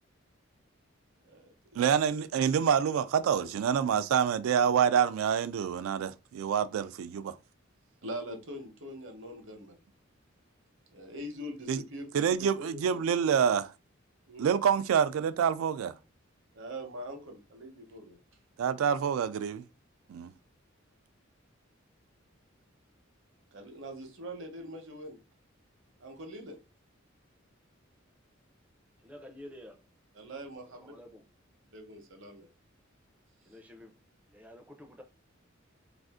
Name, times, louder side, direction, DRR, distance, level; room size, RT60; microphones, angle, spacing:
voice 1, 1.8-7.4 11.7-11.8 12.1-13.7 14.4-16.0 18.6-19.6 20.1-20.3, right 7 dB, 85° right, 0.3 m, -27 dB
voice 2, 8.0-9.8 10.9-13.0 14.3-14.5 16.5-18.2 23.5-25.2 26.0-26.6 30.1-30.9 31.7-32.5, equal, 65° right, 0.8 m, -43 dB
voice 3, 29.0-29.8 30.7-31.2 33.4-34.0 34.3-35.0, left 1 dB, 10° right, 0.4 m, -50 dB
2.5 x 2.4 x 3.5 m
head